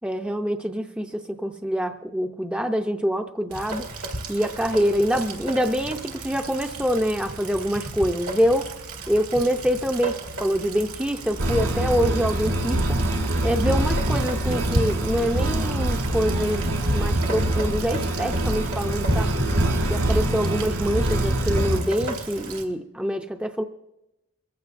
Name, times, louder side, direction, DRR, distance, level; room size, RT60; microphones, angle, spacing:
voice 1, 0.0-8.7 9.1-13.0 13.4-19.4 19.9-23.6, equal, 5° right, 5 dB, 0.4 m, -25 dB
Rain, 3.5-22.7, right 1 dB, 85° right, 1.9 m, -33 dB
sound 1, 11.4-21.8, right 1 dB, 65° right, 2.0 m, -24 dB
23.0 x 15.0 x 2.5 m, 0.91 s
head